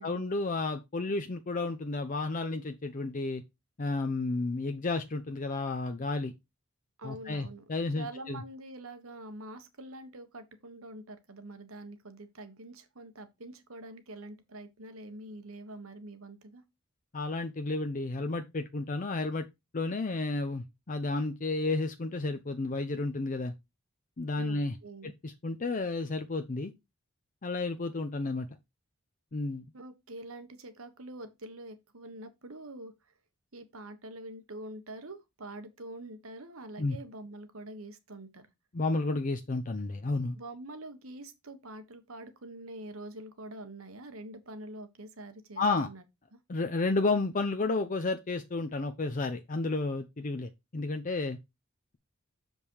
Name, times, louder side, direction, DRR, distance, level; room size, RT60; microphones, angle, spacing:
voice 1, 0.0-3.4 3.8-6.3 7.0-8.4 17.1-19.5 19.7-23.5 24.2-24.7 25.2-26.7 27.4-28.5 29.3-29.6 36.8-37.0 38.7-40.4 45.6-45.9 46.5-51.4, left 3 dB, 40° left, 0.6 m, -32 dB
voice 2, 7.0-7.6 7.9-16.6 24.4-25.1 29.7-32.9 33.5-38.5 40.3-46.0 46.3-46.4, right 1 dB, 85° right, 1.4 m, -45 dB
7.0 x 5.3 x 4.6 m
head